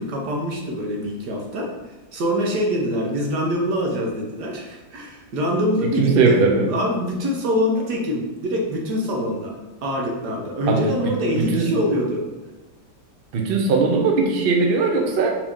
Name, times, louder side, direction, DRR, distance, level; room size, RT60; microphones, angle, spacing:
voice 1, 0.0-1.7 2.1-6.4 6.7-9.5 9.8-12.3, equal, 75° right, 0 dB, 1.4 m, -24 dB
voice 2, 6.0-6.7 10.7-11.7 13.3-15.3, right 4 dB, 90° right, 2 dB, 0.5 m, -19 dB
4.7 x 2.8 x 3.6 m, 1.1 s
omnidirectional pair, 1.9 m